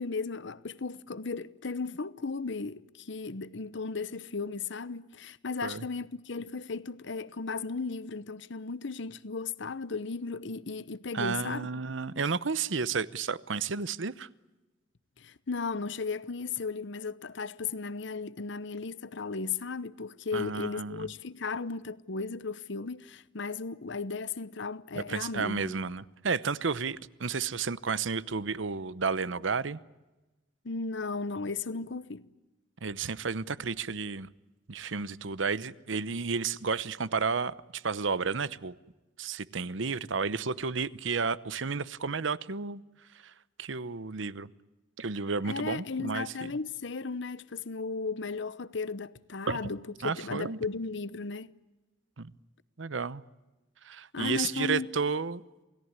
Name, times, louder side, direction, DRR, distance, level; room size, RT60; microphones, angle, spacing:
voice 1, 0.0-11.8 15.2-25.8 30.6-32.3 45.4-51.5 54.1-54.9, left 4 dB, 70° left, 0.9 m, -35 dB
voice 2, 11.1-14.3 20.3-21.1 24.9-29.8 32.8-34.3 34.7-38.7 39.2-42.8 43.6-44.5 45.0-46.5 49.5-49.6 50.0-50.6 52.2-52.3 52.8-53.2 53.8-55.4, right 5 dB, 75° right, 0.9 m, -32 dB
28.0 x 17.5 x 9.7 m
head